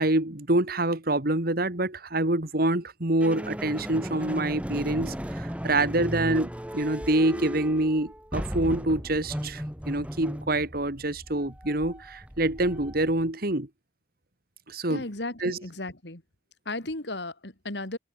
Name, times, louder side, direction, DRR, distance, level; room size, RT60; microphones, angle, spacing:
voice 1, 0.0-13.7 14.7-15.0 15.4-15.6, right 1 dB, 55° right, 2.5 m, -26 dB
sound 1, 3.2-13.3, equal, 5° right, 2.9 m, -36 dB
voice 2, 14.9-16.2 16.6-18.0, left 2 dB, 65° left, 3.2 m, -35 dB
open air
head